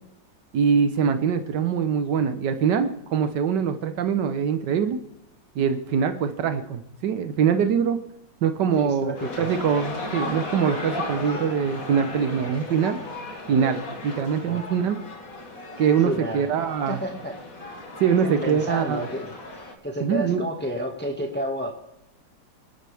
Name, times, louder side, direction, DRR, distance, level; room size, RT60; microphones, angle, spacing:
voice 1, 0.5-5.0 5.5-8.0 8.4-13.0 13.5-15.0 15.8-17.0 18.0-19.1 20.0-20.4, right 7 dB, 85° right, 9 dB, 1.6 m, -23 dB
voice 2, 8.8-9.5 14.4-14.6 16.0-16.5 16.9-17.3 18.2-19.3 19.8-21.7, equal, 5° left, 1 dB, 1.6 m, -30 dB
sound 1, 9.2-19.7, left 2 dB, 55° left, 2.7 m, -35 dB
26.5 x 12.0 x 3.5 m, 0.83 s
omnidirectional pair, 1.8 m